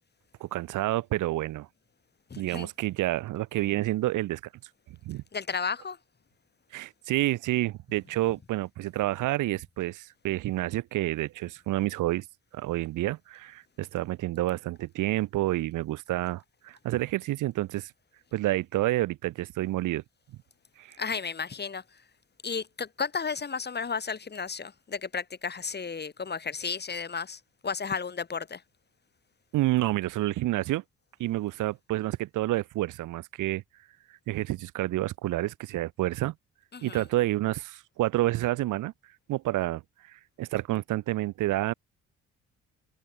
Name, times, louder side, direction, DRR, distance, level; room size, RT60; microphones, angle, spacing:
voice 1, 0.4-1.7 2.4-4.4 5.0-5.2 6.7-12.2 12.5-17.9 18.3-20.0 20.8-21.0 29.5-30.8 31.2-33.6 34.3-36.3 36.8-38.9 39.3-41.7, right 16 dB, 85° right, 1.4 m, -29 dB
voice 2, 2.3-2.7 5.3-6.0 21.0-22.0 22.4-28.6 36.7-37.0, left 5 dB, 35° left, 2.7 m, -33 dB
cardioid pair, 90°, 30 cm